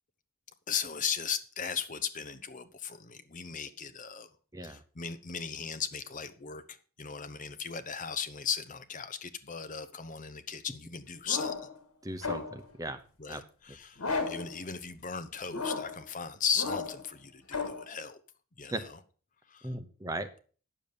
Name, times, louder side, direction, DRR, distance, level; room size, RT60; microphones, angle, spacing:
voice 1, 0.7-4.3 4.6-11.7 13.2-18.2 18.6-18.8 19.5-19.7, left 6 dB, 35° left, 0.8 m, -37 dB
sound 1, 11.2-11.8 12.2-12.7 14.0-14.5 15.5-16.0 16.5-17.1 17.5-17.8, left 4 dB, 85° left, 2.0 m, -34 dB
voice 2, 12.0-13.0 13.3-13.4 18.7-18.8 19.6-20.4, right 1 dB, 15° right, 0.8 m, -37 dB
9.4 x 7.1 x 6.8 m
head